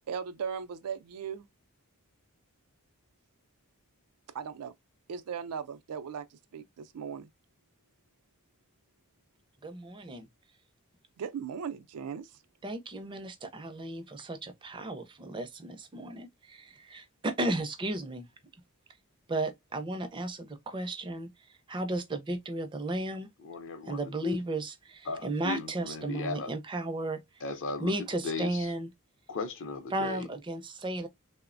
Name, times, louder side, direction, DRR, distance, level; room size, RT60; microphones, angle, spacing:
voice 1, 0.1-1.5 4.3-4.7 5.1-7.3 11.2-12.4, right 7 dB, 90° right, 0.4 m, -38 dB
voice 2, 9.6-10.3 12.6-18.2 19.3-21.3 21.7-23.3 23.8-27.2 27.8-28.9 29.9-31.1, right 2 dB, 20° right, 0.4 m, -34 dB
voice 3, 23.4-24.4 25.1-26.5 27.4-27.9 28.2-28.7 29.3-30.3, left 4 dB, 55° left, 0.5 m, -36 dB
3.1 x 2.0 x 2.4 m
head